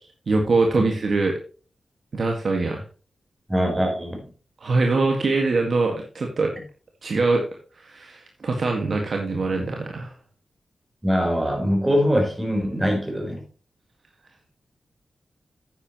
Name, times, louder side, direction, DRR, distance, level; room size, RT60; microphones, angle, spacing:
voice 1, 0.3-1.4 2.1-2.8 4.6-6.5 7.0-7.4 7.8-10.1, right 3 dB, 60° right, 1.8 m, -23 dB
voice 2, 3.5-4.2 11.0-13.4, equal, 10° right, 4.5 m, -22 dB
10.0 x 9.3 x 3.1 m
wide cardioid pair, 100°, 0 cm